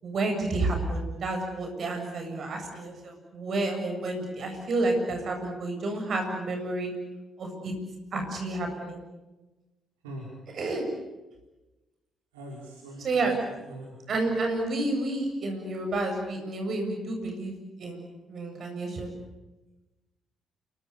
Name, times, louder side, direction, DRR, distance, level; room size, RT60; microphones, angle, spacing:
voice 1, 0.0-6.9 7.4-7.7 8.1-9.0 10.5-10.9 13.0-13.4 14.1-19.1, right 2 dB, 50° right, 4 dB, 7.7 m, -30 dB
voice 2, 12.3-14.0, right 1 dB, 75° right, -2 dB, 5.2 m, -43 dB
29.0 x 24.5 x 7.0 m, 1.1 s
figure-of-eight pair, 40°, 0 cm